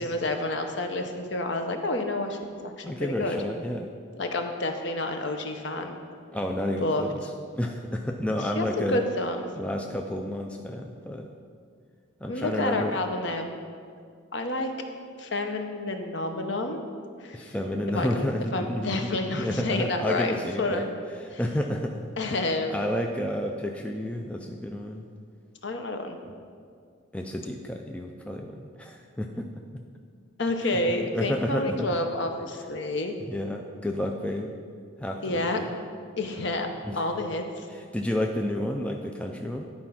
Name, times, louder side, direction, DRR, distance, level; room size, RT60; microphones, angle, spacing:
voice 1, 0.0-3.4 4.2-6.0 6.8-7.0 8.5-9.5 12.3-13.5 14.3-14.7 15.2-16.8 17.2-17.5 17.9-20.9 21.3-21.4 22.2-22.8 25.6-26.2 30.4-33.1 35.2-35.6 36.2-36.7 36.9-37.7, left 2 dB, 55° left, 5 dB, 0.8 m, -29 dB
voice 2, 2.8-3.9 6.3-7.2 7.6-9.0 9.6-11.3 12.2-13.0 17.3-20.8 21.2-22.4 22.7-25.1 27.1-29.5 29.7-29.8 30.6-32.0 33.3-34.5 35.0-35.7 36.8-37.1 37.7-39.6, left 1 dB, 5° left, 2 dB, 0.3 m, -31 dB
10.5 x 4.3 x 5.7 m, 2.2 s
head